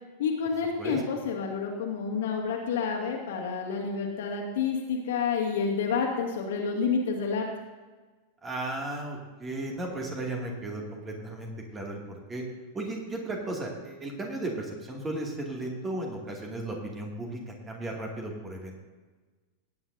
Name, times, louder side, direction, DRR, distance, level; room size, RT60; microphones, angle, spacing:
voice 1, 0.2-7.5, left 5 dB, 55° left, 0 dB, 2.2 m, -29 dB
voice 2, 8.4-12.4 12.7-18.8, right 2 dB, 20° right, 0 dB, 2.4 m, -35 dB
18.0 x 9.4 x 2.7 m, 1.3 s
figure-of-eight pair, 90°, 0 cm